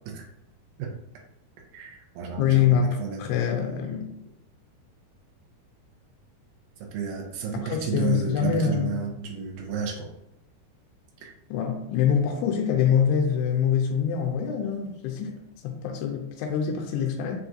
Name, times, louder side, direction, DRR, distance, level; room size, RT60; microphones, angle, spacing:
voice 1, 1.7-3.2 6.9-10.1 11.2-11.3, right 7 dB, 85° right, 1.9 m, -32 dB
voice 2, 2.4-4.1 7.6-9.0 11.5-15.4 15.6-17.4, left 8 dB, 85° left, 2.6 m, -25 dB
6.3 x 2.4 x 2.7 m
omnidirectional pair, 4.6 m